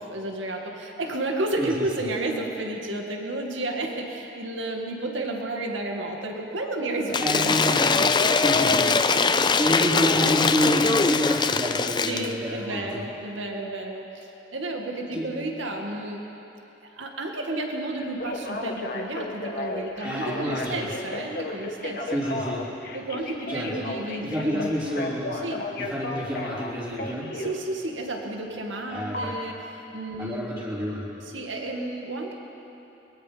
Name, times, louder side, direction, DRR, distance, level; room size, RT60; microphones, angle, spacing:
voice 1, 0.0-8.3 12.1-16.2 16.9-22.1 22.9-25.0 25.4-25.7 27.3-30.5 31.2-32.3, right 2 dB, 80° right, 1 dB, 2.2 m, -32 dB
voice 2, 1.6-2.0 7.2-8.0 8.4-9.2 9.6-13.0 15.1-15.3 20.0-20.9 22.1-22.7 23.5-23.9 24.2-25.4 25.7-27.3 28.9-29.3 30.2-31.1, equal, 20° right, -9 dB, 3.5 m, -28 dB
Cheering / Applause / Crowd, 7.1-12.3, left 4 dB, 25° left, 0.5 m, -22 dB
Telephone, 18.0-27.6 29.1-29.3, left 2 dB, 50° left, 1.7 m, -33 dB
23.0 x 22.0 x 5.3 m, 2.9 s
head